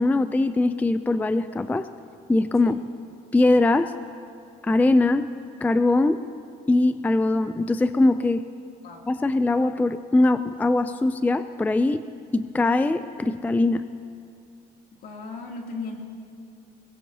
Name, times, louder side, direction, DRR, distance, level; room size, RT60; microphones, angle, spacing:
voice 1, 0.0-1.9 2.3-2.8 3.3-3.9 4.6-5.3 5.6-6.2 6.7-8.4 9.1-12.0 12.3-13.8, left 2 dB, 10° left, 11 dB, 0.4 m, -21 dB
voice 2, 15.0-16.0, left 3 dB, 65° left, -1 dB, 2.8 m, -36 dB
22.0 x 21.0 x 2.8 m, 2.4 s
cardioid pair, 110°, 17 cm